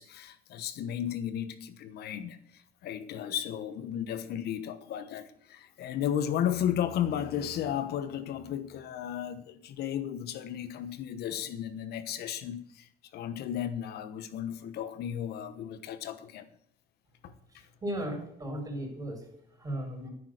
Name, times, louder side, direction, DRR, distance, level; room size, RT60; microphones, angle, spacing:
voice 1, 0.0-16.5 17.2-17.3, left 10 dB, 70° left, 1.2 m, -34 dB
voice 2, 17.5-19.2 19.6-20.1, right 1 dB, 20° right, 4.9 m, -36 dB
10.5 x 9.2 x 6.6 m
cardioid pair, 110°, 17 cm